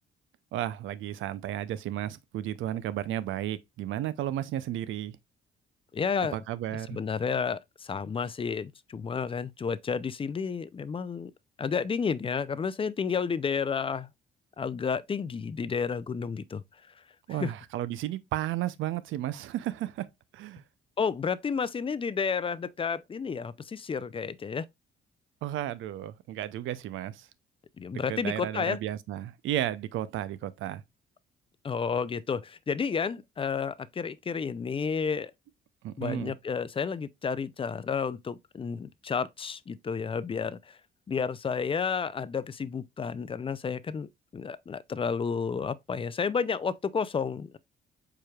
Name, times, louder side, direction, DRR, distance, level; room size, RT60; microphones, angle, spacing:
voice 1, 0.5-5.1 6.3-7.0 17.3-20.1 20.3-20.6 25.4-27.3 27.9-30.8 35.8-36.4, right 12 dB, 80° right, 0.5 m, -33 dB
voice 2, 5.9-6.4 6.7-11.3 11.6-14.1 14.6-16.6 17.4-17.5 21.0-24.7 27.8-28.8 31.6-35.3 36.0-40.8 41.1-47.6, left 6 dB, 25° left, 0.4 m, -31 dB
4.9 x 4.6 x 2.3 m
cardioid pair, 90°, 20 cm